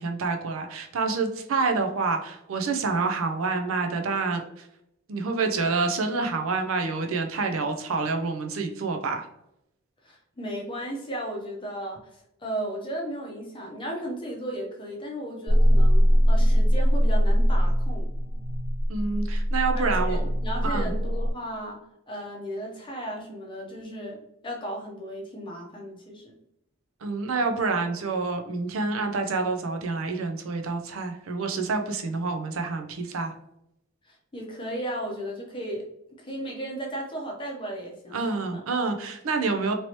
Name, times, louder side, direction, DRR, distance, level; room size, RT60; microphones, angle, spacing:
voice 1, 0.0-4.7 5.1-9.3 18.9-20.3 20.6-20.9 27.0-33.3 38.1-39.7, right 4 dB, 75° right, 5 dB, 0.5 m, -27 dB
voice 2, 10.0-18.1 19.7-21.8 22.1-26.3 34.0-35.8 36.2-38.6, right 1 dB, 25° left, 0 dB, 0.7 m, -35 dB
sound 1, 15.5-21.3, equal, 50° right, 1.3 m, -22 dB
3.0 x 2.8 x 2.9 m, 0.80 s
head